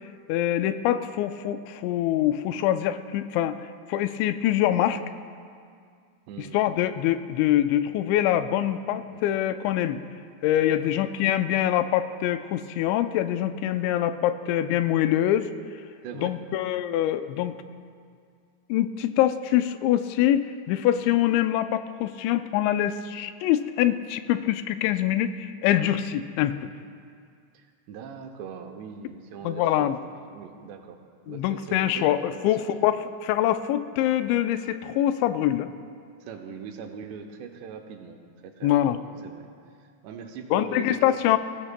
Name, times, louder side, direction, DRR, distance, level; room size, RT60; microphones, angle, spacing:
voice 1, 0.3-3.6 3.9-5.0 6.4-10.0 10.4-15.5 16.2-17.6 18.7-26.7 29.4-30.0 31.3-35.7 38.6-39.0 40.5-41.4, left 12 dB, 90° left, 10 dB, 2.9 m, -24 dB
voice 2, 6.3-6.6 9.1-9.2 10.6-11.0 16.0-16.3 27.5-29.9 30.3-31.0 31.3-32.7 36.2-38.2 38.4-39.5 40.0-41.2, right 7 dB, 80° right, 4 dB, 2.8 m, -41 dB
22.0 x 15.0 x 2.2 m, 2.2 s
omnidirectional pair, 5.1 m